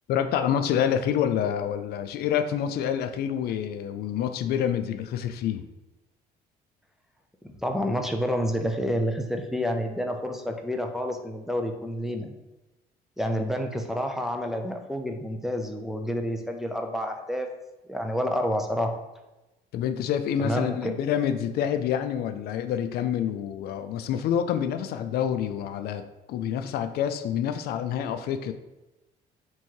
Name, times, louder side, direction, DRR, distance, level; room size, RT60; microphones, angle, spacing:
voice 1, 0.1-5.6 19.7-28.5, left 9 dB, 70° left, 8 dB, 0.4 m, -27 dB
voice 2, 7.4-12.3 13.2-17.5 17.9-19.0 20.4-20.9, equal, ahead, 3 dB, 0.5 m, -29 dB
3.6 x 3.0 x 4.4 m, 1.0 s
cardioid pair, 110°, 17 cm